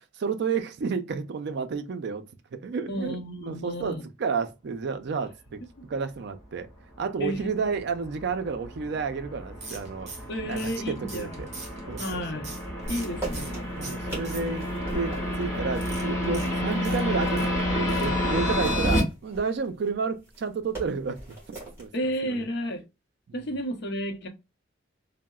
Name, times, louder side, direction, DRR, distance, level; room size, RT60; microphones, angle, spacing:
voice 1, 0.0-2.2 2.5-5.6 5.9-6.7 7.0-11.5 11.9-12.4 12.7-12.8 13.8-14.7 14.9-22.5 23.3-23.6, right 5 dB, 55° right, 0.4 m, -31 dB
voice 2, 2.9-4.0 7.2-7.5 10.3-11.5 12.0-12.5 12.9-13.7 21.9-22.8 23.3-24.3, equal, 55° left, 0.6 m, -32 dB
sound 1, 7.5-19.0, equal, 10° left, 1.6 m, -30 dB
sound 2, 9.6-13.6 13.8-14.8 15.7-17.5 17.9-18.2 18.5-18.6 18.8-18.9, right 3 dB, 35° right, 0.8 m, -42 dB
sound 3, 12.8-17.7 18.1-21.9, right 2 dB, 15° right, 1.7 m, -41 dB
3.7 x 2.0 x 2.2 m
head